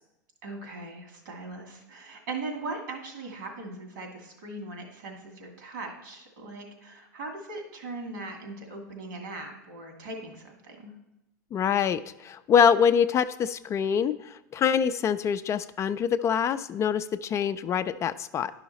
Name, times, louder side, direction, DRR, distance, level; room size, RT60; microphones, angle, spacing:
voice 1, 0.4-10.9, right 2 dB, 75° right, 3 dB, 2.2 m, -39 dB
voice 2, 11.5-18.5, left 7 dB, 30° left, 11 dB, 0.3 m, -25 dB
10.5 x 5.7 x 4.1 m, 0.88 s
hypercardioid pair, 100°, 10 cm